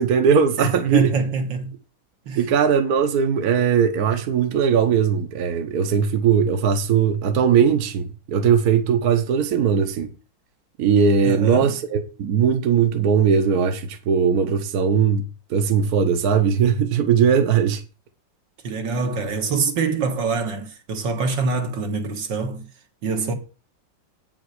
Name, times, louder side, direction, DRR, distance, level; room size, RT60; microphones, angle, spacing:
voice 1, 0.0-1.1 2.4-10.1 10.8-17.8, right 7 dB, 60° right, 1.4 m, -19 dB
voice 2, 0.6-1.8 2.3-2.5 11.2-11.8 18.6-22.7 23.0-23.3, right 4 dB, 75° right, 2.2 m, -25 dB
8.7 x 6.1 x 6.5 m
omnidirectional pair, 2.0 m